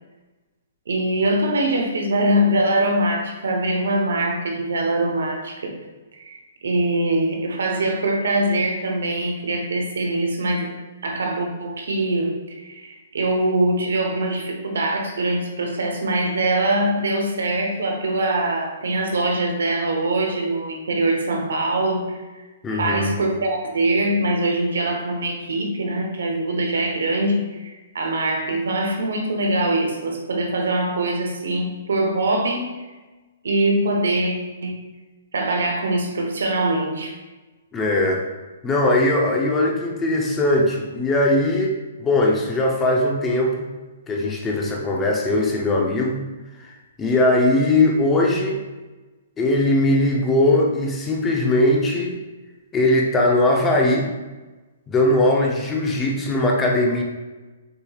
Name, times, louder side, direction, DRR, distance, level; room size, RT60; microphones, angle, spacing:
voice 1, 0.9-5.7 6.1-10.7 11.0-22.2 22.8-32.7 33.4-34.3 34.6-34.8 35.3-37.2, right 1 dB, 85° right, 2 dB, 0.9 m, -23 dB
voice 2, 22.6-23.2 37.7-38.2 38.6-41.7 42.0-43.7 44.1-46.2 46.6-46.7 47.0-48.6 49.4-52.2 52.7-54.1 54.9-57.0, left 1 dB, 15° left, 0 dB, 0.6 m, -20 dB
6.6 x 3.0 x 2.3 m, 1.2 s
hypercardioid pair, 150°, 0 cm